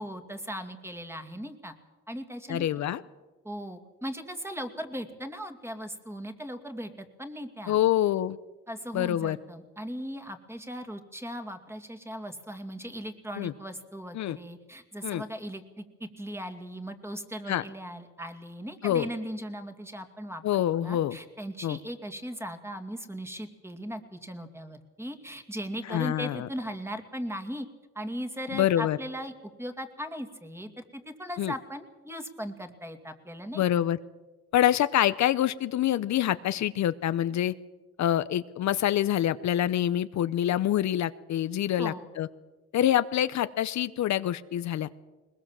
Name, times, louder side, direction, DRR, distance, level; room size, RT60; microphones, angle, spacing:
voice 1, 0.0-1.7 2.1-2.7 3.4-7.8 8.7-20.4 20.7-27.7 27.9-33.6 41.8-42.1, equal, 10° right, 7 dB, 2.5 m, -38 dB
voice 2, 2.5-3.0 7.7-8.4 8.9-9.4 13.4-13.5 14.1-14.4 15.0-15.2 17.5-17.6 18.8-19.1 20.4-21.2 21.6-21.8 25.9-26.5 28.5-29.0 31.4-31.5 33.5-34.0 34.5-37.5 38.0-42.3 42.7-44.9, left 12 dB, 65° left, 14 dB, 0.7 m, -26 dB
21.0 x 20.5 x 7.4 m, 1.2 s
cardioid pair, 90°, 30 cm